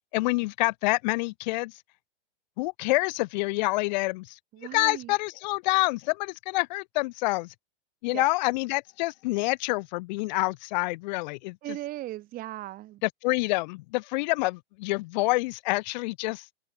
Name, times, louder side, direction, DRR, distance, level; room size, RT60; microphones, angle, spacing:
voice 1, 0.1-1.7 2.6-4.3 4.7-7.5 8.0-11.6 13.2-16.4, left 23 dB, 50° left, 1.2 m, -27 dB
voice 2, 4.5-5.1 8.1-8.3 11.6-13.0, right 15 dB, 30° right, 1.8 m, -37 dB
hypercardioid pair, 135°, 29 cm